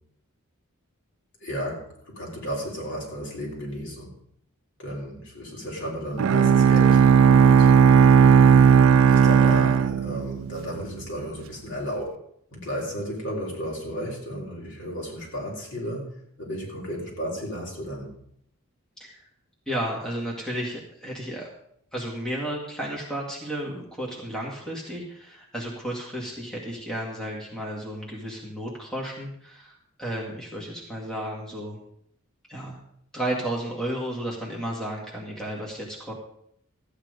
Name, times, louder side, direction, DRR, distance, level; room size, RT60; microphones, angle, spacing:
voice 1, 1.4-4.1 4.8-7.7 9.1-12.2 12.5-16.1 16.4-18.1, equal, 55° left, -2 dB, 3.9 m, -33 dB
Bowed string instrument, 6.2-10.6, right 7 dB, 65° right, 0.3 m, -16 dB
voice 2, 19.7-21.5 21.9-31.8 32.5-32.8 33.1-36.1, right 1 dB, 5° left, -4 dB, 2.0 m, -33 dB
13.5 x 9.0 x 5.1 m, 0.69 s
head